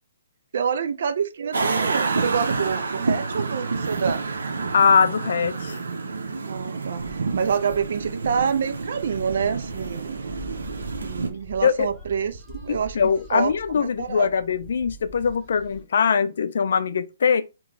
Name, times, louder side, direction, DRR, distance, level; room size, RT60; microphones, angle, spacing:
voice 1, 0.5-4.2 6.4-10.2 11.0-13.0 13.3-14.3, right 7 dB, 60° right, 0.3 m, -27 dB
sound 1, 1.5-11.3, right 4 dB, 90° right, 0.7 m, -28 dB
voice 2, 4.7-5.8 11.6-11.9 12.7-17.4, left 6 dB, 65° left, 0.4 m, -21 dB
sound 2, 7.0-15.8, right 1 dB, 5° left, 0.8 m, -43 dB
3.0 x 2.2 x 3.8 m
hypercardioid pair, 160°, 0 cm